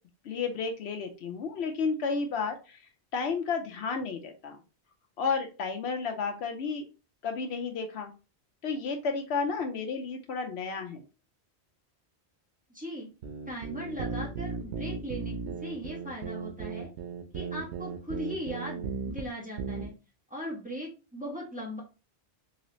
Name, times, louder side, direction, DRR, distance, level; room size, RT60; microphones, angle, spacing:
voice 1, 0.2-2.9 3.1-4.6 5.2-6.8 7.2-8.1 8.6-11.0, left 5 dB, 75° left, 5 dB, 0.9 m, -32 dB
voice 2, 12.7-13.1 13.5-15.4 15.6-16.9 17.3-19.9 20.3-21.8, equal, 5° right, -4 dB, 1.3 m, -38 dB
sound 1, 13.2-19.3 19.6-19.9, right 5 dB, 90° right, 1.0 m, -36 dB
3.9 x 2.8 x 3.0 m, 0.32 s
omnidirectional pair, 1.1 m